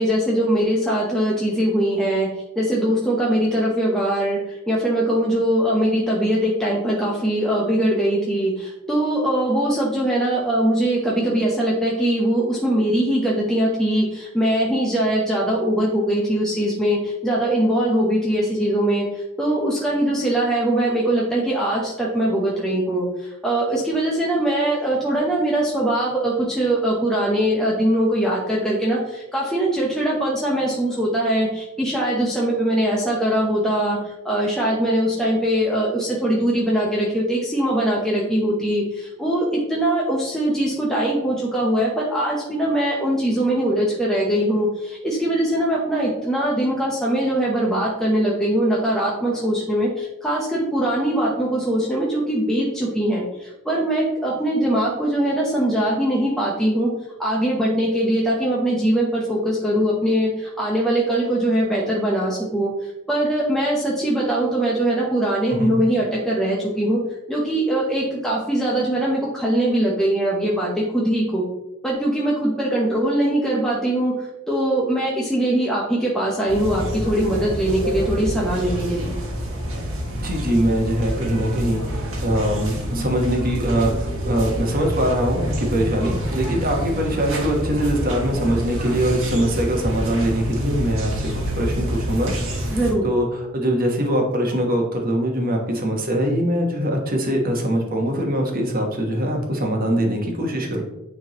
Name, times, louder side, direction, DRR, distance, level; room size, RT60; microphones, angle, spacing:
voice 1, 0.0-2.3 2.6-56.9 57.2-67.0 67.3-71.4 71.8-79.1 92.7-93.0, right 1 dB, 5° left, -5 dB, 0.8 m, -21 dB
sound 1, 76.5-92.9, equal, 65° right, 1.5 m, -27 dB
voice 2, 80.2-92.3 92.6-92.8 93.0-93.3 93.5-100.8, right 1 dB, 45° right, 2 dB, 1.2 m, -22 dB
9.1 x 3.5 x 2.9 m, 0.97 s
head